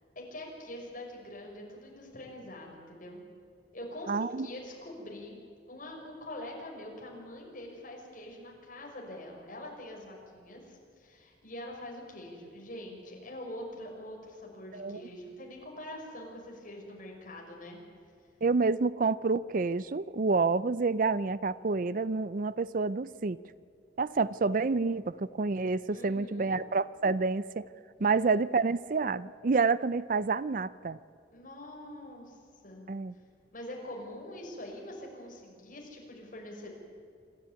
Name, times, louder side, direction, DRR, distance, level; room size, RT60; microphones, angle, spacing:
voice 1, 0.2-3.2 3.7-5.4 5.7-17.8 25.9-26.5 28.0-28.2 31.3-32.9 33.5-36.7, left 1 dB, 50° left, 0 dB, 5.9 m, -44 dB
voice 2, 4.1-4.5 14.7-15.0 18.4-23.4 24.0-27.6 28.0-31.0 32.9-33.1, right 4 dB, 50° right, 17 dB, 0.5 m, -28 dB
26.5 x 13.5 x 9.7 m, 2.4 s
head